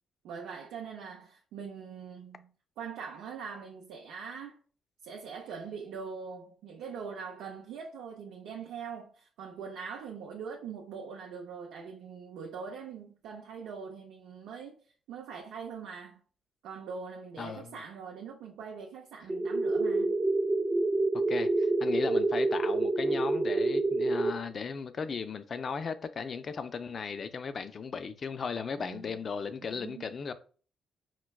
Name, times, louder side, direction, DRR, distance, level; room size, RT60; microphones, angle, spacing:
voice 1, 0.2-2.5 2.8-4.6 5.0-14.8 15.1-16.2 16.6-20.2 28.8-29.2 29.7-30.0, right 6 dB, 85° right, 0.4 m, -42 dB
voice 2, 17.4-17.8 21.3-30.3, left 5 dB, 45° left, 0.3 m, -36 dB
sound 1, 19.3-24.3, right 2 dB, 20° right, 0.4 m, -27 dB
4.4 x 2.2 x 2.2 m
cardioid pair, 90°, 0 cm